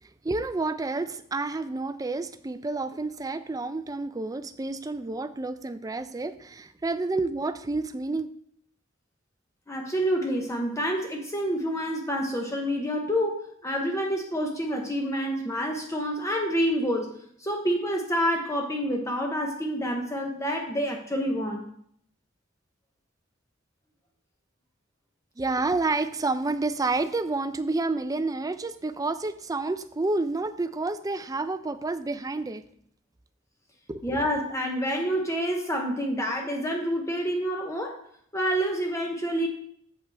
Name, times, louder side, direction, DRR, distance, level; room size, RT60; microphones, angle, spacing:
voice 1, 0.2-8.3 25.4-32.6 33.9-34.2, right 3 dB, 20° right, 11 dB, 0.4 m, -29 dB
voice 2, 9.7-17.1 17.4-21.7 34.0-38.1 38.3-39.5, equal, 15° left, 2 dB, 0.8 m, -28 dB
8.5 x 7.4 x 3.4 m, 0.65 s
head